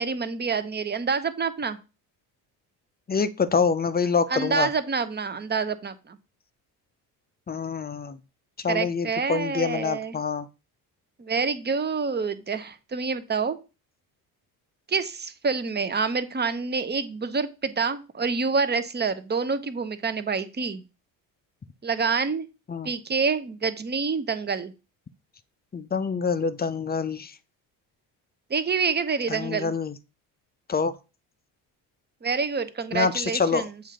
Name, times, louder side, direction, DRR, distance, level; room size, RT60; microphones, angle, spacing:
voice 1, 0.0-1.8 4.3-6.2 8.7-10.2 11.2-13.6 14.9-20.8 21.8-22.5 22.8-24.7 28.5-29.7 32.2-33.7, right 5 dB, 25° right, 12 dB, 0.8 m, -27 dB
voice 2, 3.1-4.7 7.5-8.2 8.6-10.5 22.7-22.9 25.7-27.3 29.3-30.0 30.7-30.9 32.9-33.7, left 5 dB, 20° left, 13 dB, 0.6 m, -26 dB
7.2 x 2.8 x 5.1 m, 0.31 s
supercardioid pair, 65°, 43 cm